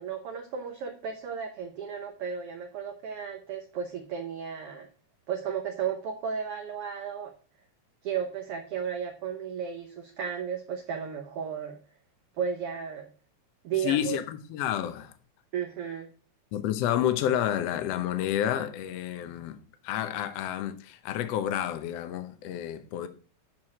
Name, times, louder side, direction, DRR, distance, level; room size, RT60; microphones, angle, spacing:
voice 1, 0.0-4.9 5.3-7.3 8.0-11.8 12.4-13.1 13.6-14.2 15.5-16.1, right 7 dB, 65° right, 1.6 m, -34 dB
voice 2, 13.8-15.1 16.5-19.6 19.8-23.1, left 11 dB, 70° left, 1.7 m, -30 dB
11.5 x 4.8 x 4.8 m
omnidirectional pair, 3.5 m